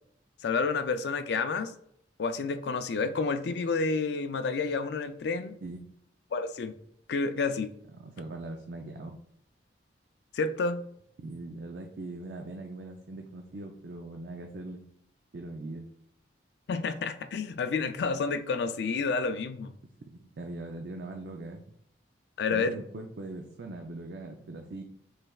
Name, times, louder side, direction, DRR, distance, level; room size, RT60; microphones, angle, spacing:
voice 1, 0.4-1.7 2.2-5.6 6.3-6.7 7.1-7.7 10.3-10.8 16.7-19.7 22.4-22.7, left 4 dB, 60° left, 0.3 m, -29 dB
voice 2, 8.0-9.2 11.2-14.8 15.3-15.9 20.2-21.6 22.5-24.8, right 2 dB, 60° right, 0.4 m, -41 dB
6.5 x 3.3 x 2.3 m
head